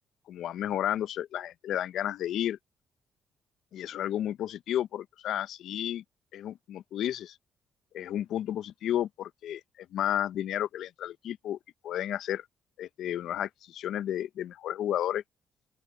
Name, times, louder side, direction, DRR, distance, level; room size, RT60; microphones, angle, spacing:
voice 1, 0.3-2.6 3.7-6.0 6.3-7.4 7.9-11.6 11.8-12.4 12.8-15.2, left 11 dB, 75° left, 0.5 m, -32 dB
open air
cardioid pair, 90°, 0 cm